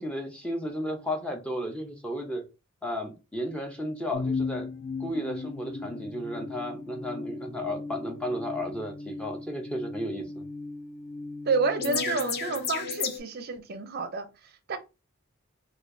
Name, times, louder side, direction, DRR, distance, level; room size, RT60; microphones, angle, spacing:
voice 1, 0.0-2.4 2.8-4.7 5.0-10.5, equal, 5° left, 0.5 m, -33 dB
sound 1, 4.1-13.2, left 4 dB, 50° left, 0.5 m, -35 dB
voice 2, 11.5-14.8, right 4 dB, 45° right, 0.5 m, -30 dB
4.4 x 2.3 x 2.6 m
head